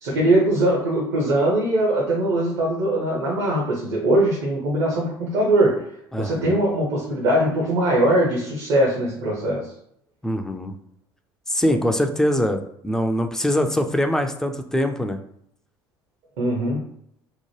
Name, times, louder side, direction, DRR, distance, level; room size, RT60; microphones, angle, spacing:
voice 1, 0.0-5.9 6.2-9.7 16.4-16.8, right 1 dB, 60° right, -4 dB, 0.7 m, -21 dB
voice 2, 6.1-6.6 10.2-10.7 11.5-15.2, left 1 dB, 5° left, 5 dB, 0.3 m, -23 dB
2.9 x 2.1 x 3.0 m, 0.72 s
figure-of-eight pair, 60°, 13 cm